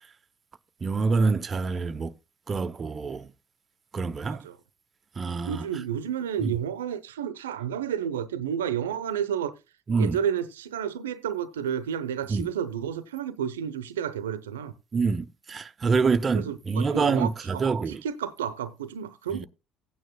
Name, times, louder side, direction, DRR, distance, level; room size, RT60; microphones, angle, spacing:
voice 1, 0.8-2.1 2.5-3.2 3.9-4.4 5.2-5.6 9.9-10.2 12.3-12.5 14.9-18.0 19.3-19.5, right 4 dB, 30° right, 0.7 m, -26 dB
voice 2, 5.4-9.5 10.0-14.7 16.3-19.5, right 9 dB, 85° right, 0.7 m, -31 dB
15.5 x 9.3 x 2.2 m
hypercardioid pair, 70°, 0 cm